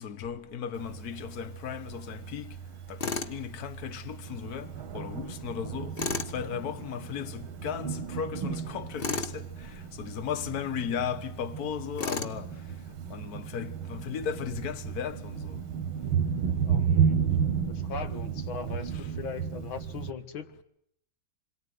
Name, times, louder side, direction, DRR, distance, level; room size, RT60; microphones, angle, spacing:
voice 1, 0.0-2.5 2.9-4.7 4.9-5.9 6.3-9.5 10.0-12.5 13.1-15.6 18.9-19.0, left 8 dB, 50° left, 1.7 m, -36 dB
Thunder, 0.8-20.1, right 7 dB, 85° right, 2.2 m, -33 dB
Tools, 3.0-3.4 6.0-6.3 9.0-9.4 12.0-12.4, left 4 dB, 30° left, 1.4 m, -32 dB
voice 2, 16.7-17.2 17.7-20.5, left 6 dB, 75° left, 2.4 m, -39 dB
28.0 x 22.0 x 9.6 m
omnidirectional pair, 2.2 m